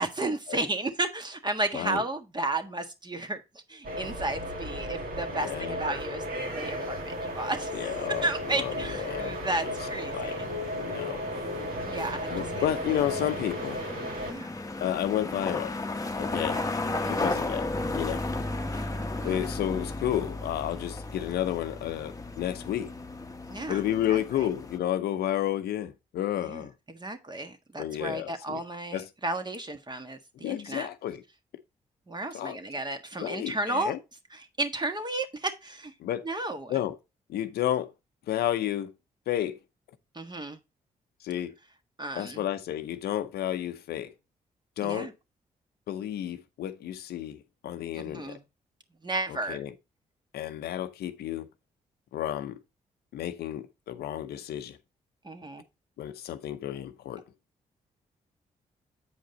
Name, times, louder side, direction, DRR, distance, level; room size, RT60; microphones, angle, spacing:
voice 1, 0.0-6.2 6.5-7.9 8.2-10.5 11.8-13.0 14.2-14.5 16.4-16.7 17.0-17.4 18.7-19.4 23.5-23.8 24.1-24.5 26.4-30.9 32.1-33.9 34.3-35.9 36.2-36.7 40.1-40.6 42.0-42.4 44.8-45.1 47.9-48.4 49.0-49.6 55.2-55.6, right 2 dB, 25° right, 1.6 m, -33 dB
sound 1, 3.8-14.3, equal, 60° right, 2.1 m, -34 dB
voice 2, 5.3-5.9 7.7-9.7 10.1-10.4 10.7-11.2 12.3-13.8 14.8-15.7 16.2-16.6 17.1-18.2 19.2-22.9 23.7-26.7 27.8-28.6 28.9-29.1 30.4-31.2 32.3-32.6 33.2-34.0 36.0-36.3 36.7-37.0 37.3-37.9 38.3-38.9 39.3-39.6 41.2-41.5 42.1-44.1 44.8-45.1 45.9-48.4 49.3-49.7 50.3-51.5 52.1-52.6 53.1-54.8 56.0-57.2, left 11 dB, 80° left, 0.7 m, -31 dB
sound 2, 6.4-24.8, left 2 dB, 20° left, 1.0 m, -36 dB
8.0 x 5.1 x 4.0 m
supercardioid pair, 50°, 16 cm